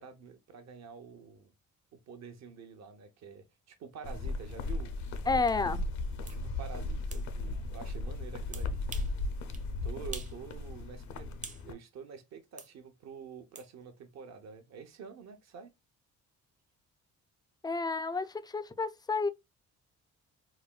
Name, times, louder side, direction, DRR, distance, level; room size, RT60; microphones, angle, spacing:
voice 1, 0.0-1.5 1.9-4.9 5.4-5.5 6.3-8.8 9.8-11.3 11.6-15.7, right 6 dB, 60° right, 0.8 m, -48 dB
sound 1, 4.0-11.7, left 2 dB, 70° left, 0.6 m, -36 dB
voice 2, 5.3-5.8 17.6-19.3, left 3 dB, 15° left, 0.3 m, -30 dB
sound 2, 5.5-5.6 6.3-6.4 7.1-7.3 8.5-9.2 9.5-9.7 10.1-10.4 10.7-11.7 12.6-12.7 13.5-13.7, right 4 dB, 25° right, 0.6 m, -46 dB
4.1 x 2.1 x 2.3 m
cardioid pair, 90°, 30 cm